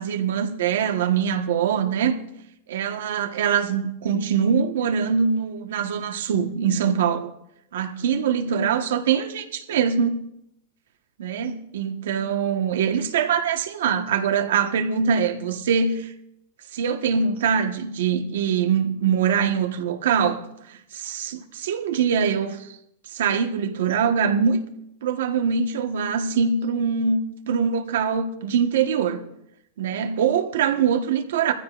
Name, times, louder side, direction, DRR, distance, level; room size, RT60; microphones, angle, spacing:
voice 1, 0.0-2.2 2.7-7.3 7.7-10.2 11.2-16.1 16.7-20.4 20.7-22.6 23.1-24.6 25.0-29.2 29.8-31.5, right 7 dB, 75° right, 1.3 m, -23 dB
21.0 x 15.0 x 2.5 m
supercardioid pair, 175°, 0 cm